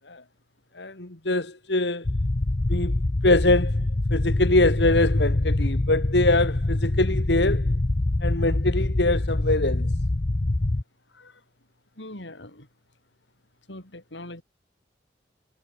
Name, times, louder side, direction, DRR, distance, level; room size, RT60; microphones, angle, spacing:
voice 1, 0.7-2.1 2.7-3.0 3.2-7.8 8.2-9.9, left 2 dB, 75° left, 2.3 m, -23 dB
sound 1, 2.0-10.8, left 2 dB, 40° left, 0.8 m, -24 dB
voice 2, 11.1-11.4 11.9-12.7 13.7-14.4, left 1 dB, 90° left, 6.0 m, -42 dB
head